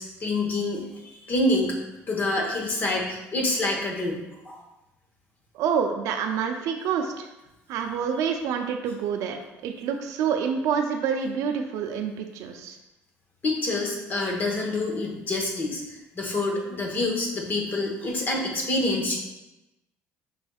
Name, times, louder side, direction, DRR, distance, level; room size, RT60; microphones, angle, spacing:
voice 1, 0.0-1.8 2.1-4.6 13.4-19.2, left 2 dB, 35° left, 0 dB, 0.9 m, -27 dB
voice 2, 5.5-7.3 7.7-9.4 9.6-12.8, right 7 dB, 70° right, 4 dB, 0.4 m, -27 dB
5.2 x 3.3 x 2.3 m, 0.96 s
cardioid pair, 120°, 6 cm